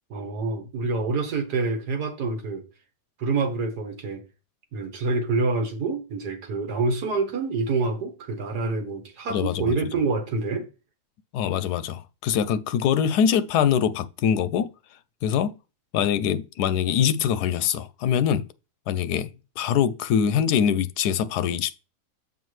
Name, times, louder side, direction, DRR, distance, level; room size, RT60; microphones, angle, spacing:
voice 1, 0.1-2.6 3.2-4.2 4.7-10.7, right 3 dB, 85° right, 1.8 m, -27 dB
voice 2, 9.3-9.8 11.3-14.7 15.2-15.5 15.9-18.5 18.9-19.3 19.6-21.8, left 8 dB, 90° left, 1.1 m, -23 dB
7.3 x 5.3 x 3.1 m
omnidirectional pair, 1.7 m